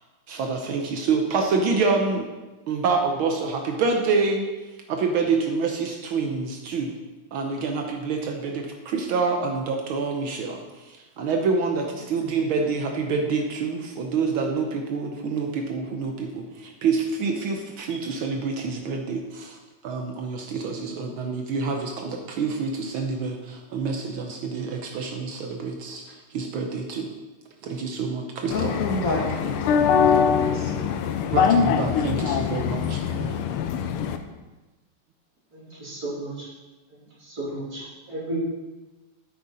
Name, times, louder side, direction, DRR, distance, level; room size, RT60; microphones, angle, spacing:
voice 1, 0.3-2.3 2.7-4.5 4.9-6.9 7.3-10.6 11.2-19.6 19.8-27.1 27.6-28.8 31.3-33.3, right 4 dB, 75° right, 3 dB, 1.6 m, -27 dB
sound 1, 28.5-34.2, left 7 dB, 85° left, 1.5 m, -23 dB
voice 2, 28.5-30.9 33.0-33.2, left 2 dB, 45° left, -2 dB, 1.4 m, -30 dB
voice 3, 35.5-36.5 37.2-38.4, right 2 dB, 45° right, -7 dB, 3.4 m, -34 dB
10.0 x 7.8 x 4.2 m, 1.2 s
omnidirectional pair, 2.4 m